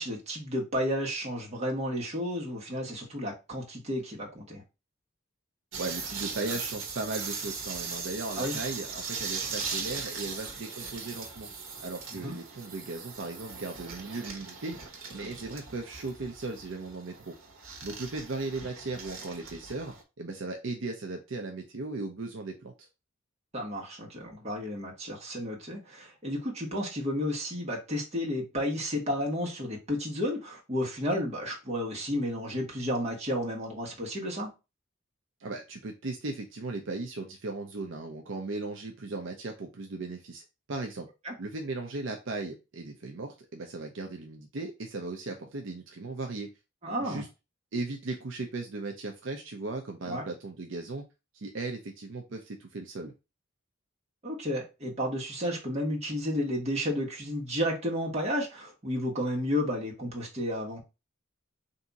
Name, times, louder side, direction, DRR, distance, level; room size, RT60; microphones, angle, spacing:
voice 1, 0.0-4.6 8.4-8.5 12.2-12.4 23.5-34.5 41.2-41.3 46.8-47.2 50.0-50.2 54.2-60.8, equal, 35° right, -2 dB, 1.3 m, -32 dB
sound 1, 5.7-20.0, right 5 dB, 85° right, 1.0 m, -39 dB
voice 2, 5.8-11.5 11.8-14.8 15.1-17.4 17.8-22.9 35.4-40.4 40.7-41.1 41.4-46.5 47.0-47.3 47.7-51.0 51.3-53.1, right 3 dB, 65° right, 3 dB, 0.6 m, -37 dB
3.6 x 2.7 x 4.0 m, 0.27 s
head